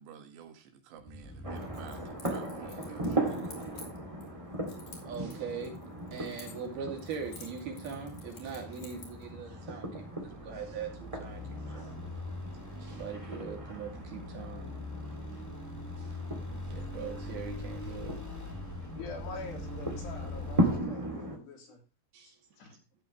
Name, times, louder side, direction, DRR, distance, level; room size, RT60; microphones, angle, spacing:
voice 1, 0.0-3.6, right 7 dB, 85° right, 7 dB, 3.9 m, -51 dB
sound 1, 1.0-20.8, left 2 dB, 15° left, 0.6 m, -43 dB
sound 2, 1.4-21.4, right 1 dB, 20° right, 0.9 m, -38 dB
Keys jangling, 1.6-4.3 4.7-6.7 7.0-9.2, left 4 dB, 50° left, 4.2 m, -52 dB
voice 2, 5.1-5.8 6.1-11.9 12.8-14.7 16.7-18.1 22.1-22.3, right 6 dB, 65° right, 3 dB, 4.3 m, -41 dB
voice 3, 19.0-21.8 22.6-22.8, left 4 dB, 75° left, 0 dB, 5.6 m, -45 dB
13.5 x 8.3 x 3.1 m, 0.29 s
omnidirectional pair, 4.9 m